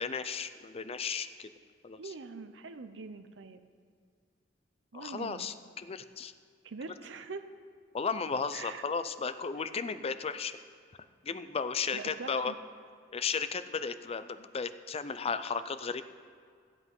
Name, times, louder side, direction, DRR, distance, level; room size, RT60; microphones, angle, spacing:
voice 1, 0.0-1.5 1.8-2.0 4.9-6.3 7.9-10.6 11.2-12.5 13.1-16.0, left 5 dB, 30° left, 12 dB, 0.4 m, -34 dB
voice 2, 2.0-3.7 4.9-5.5 6.6-7.5 8.5-8.8 11.9-12.6, right 4 dB, 70° right, 9 dB, 0.7 m, -43 dB
14.5 x 8.1 x 5.5 m, 2.1 s
head